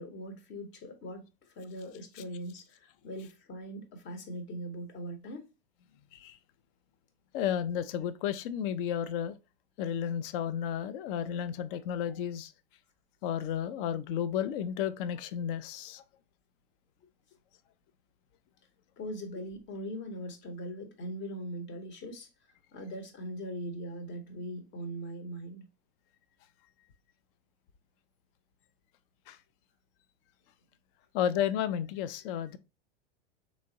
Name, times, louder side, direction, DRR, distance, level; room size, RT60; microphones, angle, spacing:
voice 1, 0.0-5.5 19.0-22.3 22.7-25.7, equal, 35° left, 0.9 m, -41 dB
voice 2, 7.3-9.4 9.8-12.5 13.2-16.0 29.3-29.4 31.1-32.6, left 9 dB, 55° left, 0.5 m, -32 dB
3.4 x 3.0 x 2.8 m
hypercardioid pair, 115°, 33 cm